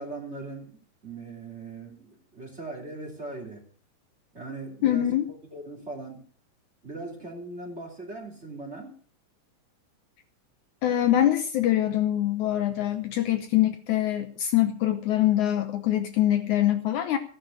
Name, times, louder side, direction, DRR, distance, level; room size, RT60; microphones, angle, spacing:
voice 1, 0.0-3.6 4.3-5.2 5.5-6.2 6.8-8.9, right 2 dB, 20° right, 2 dB, 2.7 m, -39 dB
voice 2, 4.8-5.2 10.8-17.2, left 12 dB, 70° left, 8 dB, 2.1 m, -24 dB
15.0 x 10.0 x 6.3 m, 0.44 s
omnidirectional pair, 4.0 m